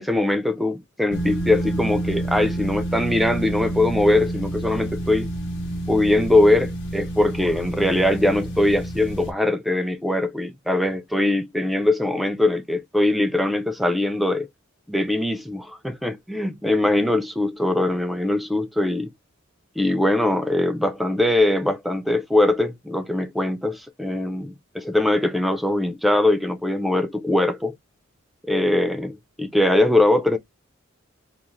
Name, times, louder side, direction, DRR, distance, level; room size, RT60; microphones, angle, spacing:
voice 1, 0.0-5.3 5.9-14.5 14.9-19.1 19.8-27.7 28.5-30.4, left 1 dB, ahead, 0.4 m, -21 dB
sound 1, 1.1-9.3, right 1 dB, 60° left, 0.8 m, -29 dB
2.4 x 2.4 x 3.0 m
head